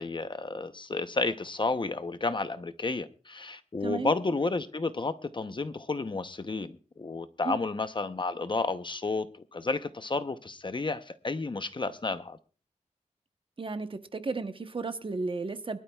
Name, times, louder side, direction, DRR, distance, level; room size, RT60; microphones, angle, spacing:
voice 1, 0.0-12.4, left 3 dB, 40° left, 0.8 m, -31 dB
voice 2, 3.8-4.1 7.4-7.6 13.6-15.8, right 3 dB, 40° right, 1.0 m, -33 dB
23.5 x 12.5 x 2.3 m
wide cardioid pair, 105°, 13 cm